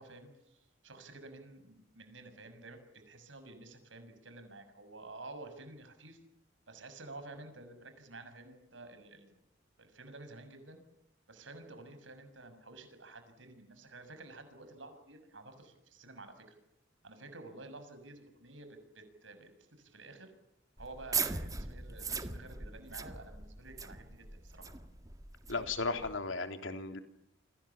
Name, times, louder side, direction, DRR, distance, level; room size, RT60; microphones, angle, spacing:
voice 1, 0.0-6.2 6.7-9.3 9.8-10.8 11.3-16.6 17.0-20.3 20.8-24.7, right 2 dB, 75° right, 9 dB, 6.6 m, -51 dB
sound 1, 20.8-26.2, right 4 dB, 20° right, 1.8 m, -40 dB
voice 2, 25.5-27.0, left 3 dB, 90° left, 6 dB, 3.4 m, -35 dB
29.5 x 26.0 x 7.3 m, 0.76 s
head